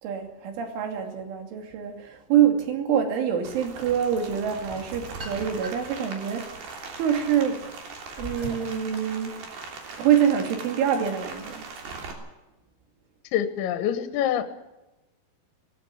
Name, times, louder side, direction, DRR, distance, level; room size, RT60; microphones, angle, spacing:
voice 1, 0.0-6.7 7.0-7.7 8.2-9.4 10.0-11.6, right 9 dB, 75° right, 5 dB, 5.1 m, -25 dB
Rain, 3.4-12.1, right 4 dB, 55° right, 4.7 m, -40 dB
sound 1, 4.6-6.0 6.5-8.8, left 1 dB, 10° right, 5.6 m, -41 dB
voice 2, 13.3-14.4, left 10 dB, 75° left, 9 dB, 3.5 m, -25 dB
19.0 x 16.5 x 9.8 m, 1.0 s
omnidirectional pair, 5.6 m